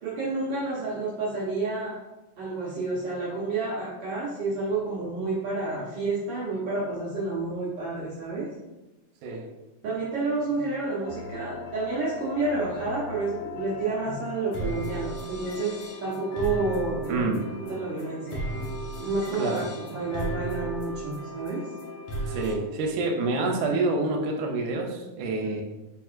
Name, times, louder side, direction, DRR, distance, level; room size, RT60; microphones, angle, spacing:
voice 1, 0.0-2.0 2.4-8.5 9.8-17.2 17.6-18.7 19.0-21.7, right 3 dB, 70° right, -8 dB, 1.4 m, -30 dB
sound 1, 11.0-22.6, equal, 75° left, 1.5 m, -36 dB
voice 2, 17.1-17.4 19.3-19.7 22.3-25.6, right 3 dB, 90° right, 1 dB, 2.0 m, -27 dB
4.5 x 3.6 x 2.4 m, 1.1 s
omnidirectional pair, 3.5 m